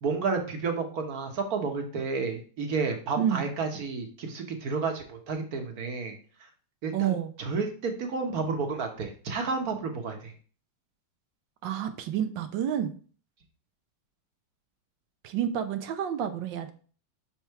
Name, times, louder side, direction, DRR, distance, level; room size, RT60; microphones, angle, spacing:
voice 1, 0.0-6.1 6.4-6.5 6.8-10.3, right 4 dB, 60° right, 4 dB, 1.5 m, -31 dB
voice 2, 6.9-7.3 11.6-12.9 15.2-16.7, right 9 dB, 90° right, 9 dB, 1.5 m, -29 dB
5.6 x 4.5 x 4.6 m, 0.41 s
omnidirectional pair, 1.9 m